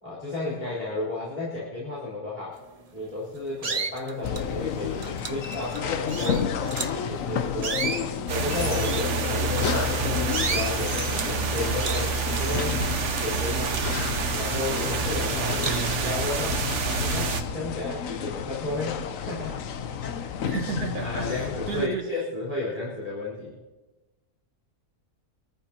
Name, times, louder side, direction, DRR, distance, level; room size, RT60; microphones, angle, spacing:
voice 1, 0.0-2.6 2.9-8.0 8.3-12.8 13.2-13.8 14.3-15.7 16.0-19.6 20.2-20.3 21.0-23.6, left 2 dB, 25° left, -7 dB, 4.5 m, -33 dB
sound 1, 2.8-3.0 3.6-4.5 5.0-7.0 7.5-9.9 10.3-10.8 11.2-11.5 11.8-13.0 13.2-14.5 15.0-15.1 15.6-16.1, right 4 dB, 35° right, 0.6 m, -33 dB
sound 2, 4.2-21.9, left 7 dB, 65° left, 1.1 m, -31 dB
sound 3, 8.3-17.4, right 5 dB, 55° right, 1.1 m, -28 dB
voice 2, 15.4-16.2 20.4-22.1, right 5 dB, 75° right, 3 dB, 2.1 m, -33 dB
24.5 x 14.0 x 3.0 m, 1.2 s
omnidirectional pair, 1.6 m